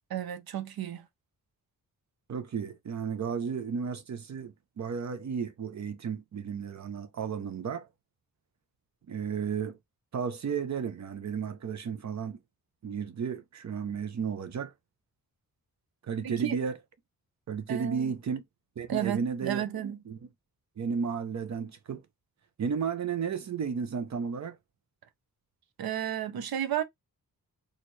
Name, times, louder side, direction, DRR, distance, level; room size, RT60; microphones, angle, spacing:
voice 1, 0.1-1.1 16.2-16.6 17.7-18.1 18.9-20.0 25.8-26.8, right 10 dB, 85° right, 0.8 m, -32 dB
voice 2, 2.3-7.9 9.1-9.8 10.1-12.4 12.8-14.7 16.0-16.8 17.5-18.4 18.8-20.3 20.8-22.0 22.6-24.6, right 6 dB, 50° right, 0.7 m, -33 dB
4.3 x 2.5 x 3.2 m
wide cardioid pair, 140°, 36 cm